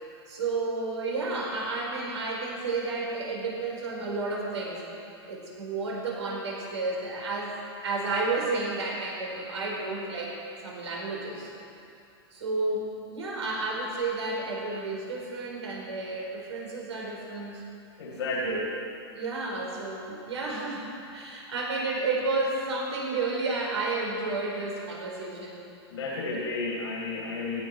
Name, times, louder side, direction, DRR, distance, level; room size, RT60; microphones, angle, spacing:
voice 1, 0.3-4.8 5.3-7.5 7.8-10.3 10.6-11.5 12.3-17.6 18.4-18.7 19.1-25.6 26.3-26.4, right 3 dB, 90° right, -2 dB, 4.9 m, -31 dB
voice 2, 18.0-18.7 25.9-27.6, left 3 dB, 85° left, -2 dB, 2.5 m, -32 dB
17.0 x 12.5 x 5.8 m, 2.6 s
hypercardioid pair, 130°, 14 cm